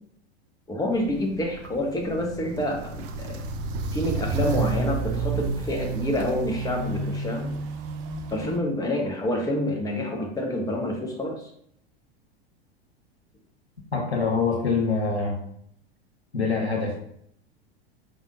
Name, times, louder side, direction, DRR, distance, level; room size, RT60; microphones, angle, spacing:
voice 1, 0.7-3.4 3.9-7.5 8.3-11.5, left 1 dB, 10° left, 1 dB, 1.1 m, -28 dB
Walk footsteps, 0.9-8.6, right 4 dB, 35° right, 0.5 m, -30 dB
voice 2, 13.9-15.4 16.3-17.0, left 4 dB, 80° left, -1 dB, 1.5 m, -24 dB
5.1 x 3.6 x 2.6 m, 0.68 s
figure-of-eight pair, 85°, 32 cm